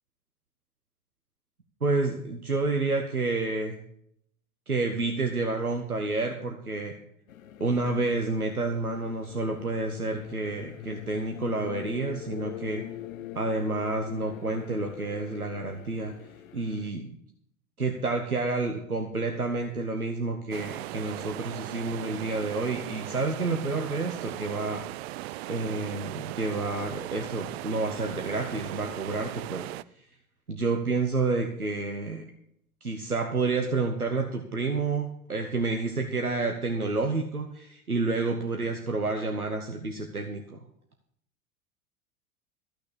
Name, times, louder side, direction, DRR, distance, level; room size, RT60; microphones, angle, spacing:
voice 1, 1.8-3.8 4.7-6.9 7.6-12.8 13.3-16.1 16.5-17.1 17.8-24.8 25.4-29.7 30.5-32.2 32.8-40.6, right 3 dB, 90° right, 4 dB, 1.1 m, -29 dB
sound 1, 7.3-16.9, left 12 dB, 70° left, 0.8 m, -43 dB
sound 2, 20.5-29.8, right 17 dB, 50° right, 0.5 m, -38 dB
14.0 x 6.4 x 8.3 m, 0.71 s
figure-of-eight pair, 80°, 43 cm